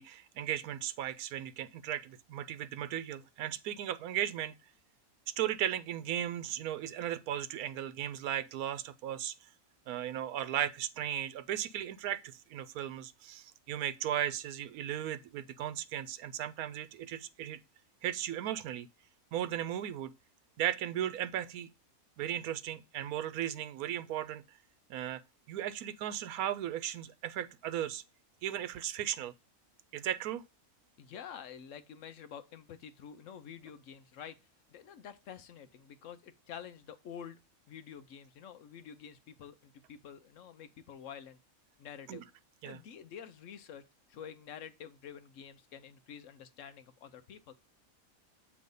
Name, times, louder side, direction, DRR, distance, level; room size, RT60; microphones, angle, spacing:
voice 1, 0.0-4.5 5.4-9.5 9.9-17.6 18.0-18.9 19.3-20.1 20.6-21.7 22.2-24.6 24.9-25.2 25.5-28.0 28.4-29.3 29.9-30.4 42.1-42.2 42.6-42.8, right 11 dB, 90° right, 1.1 m, -36 dB
voice 2, 31.0-34.4 34.7-37.4 37.7-41.4 41.8-42.2 42.6-43.8 44.1-47.5, left 8 dB, 65° left, 0.9 m, -48 dB
7.8 x 3.1 x 5.3 m
omnidirectional pair, 1.5 m